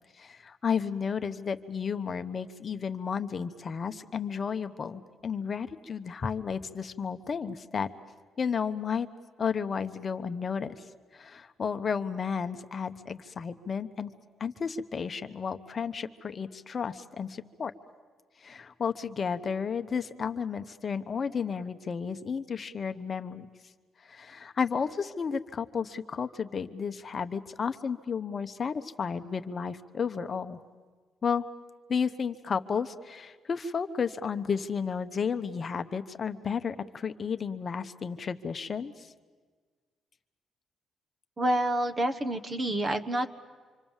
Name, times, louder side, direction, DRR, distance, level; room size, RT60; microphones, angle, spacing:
voice 1, 0.2-7.9 8.4-9.1 9.4-10.8 11.1-14.1 14.4-17.7 18.4-23.5 24.0-30.6 31.2-31.4 31.9-39.1, left 6 dB, 40° left, 9 dB, 0.9 m, -32 dB
voice 2, 41.4-43.3, right 1 dB, 30° right, 8 dB, 1.3 m, -28 dB
26.0 x 25.0 x 7.3 m, 1.5 s
cardioid pair, 90°, 0 cm